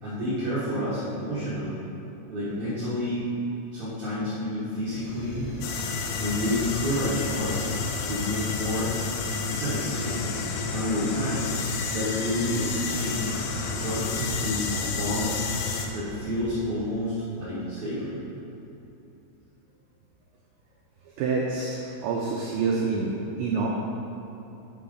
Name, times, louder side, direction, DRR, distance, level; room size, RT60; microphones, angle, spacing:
voice 1, 0.0-1.8 2.3-3.2 3.7-5.5 6.2-7.6 8.1-8.9 9.5-10.4 10.7-11.5 11.9-13.3 13.8-15.3 15.9-18.2, equal, 60° right, -12 dB, 1.9 m, -29 dB
sound 1, 4.9-17.2, left 1 dB, 65° left, 1.7 m, -39 dB
sound 2, 5.6-15.9, left 5 dB, 80° left, 3.0 m, -31 dB
voice 2, 21.2-23.1 23.4-23.7, right 4 dB, 90° right, -2 dB, 2.5 m, -27 dB
9.2 x 7.0 x 3.9 m, 2.9 s
omnidirectional pair, 5.9 m